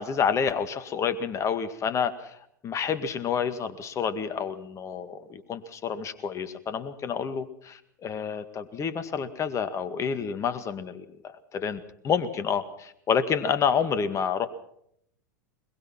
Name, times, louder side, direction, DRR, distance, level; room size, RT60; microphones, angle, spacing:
voice 1, 0.0-2.4 2.6-11.1 11.5-14.5, left 6 dB, 30° left, 12 dB, 1.9 m, -29 dB
22.0 x 21.5 x 5.9 m, 0.71 s
figure-of-eight pair, 90°, 10 cm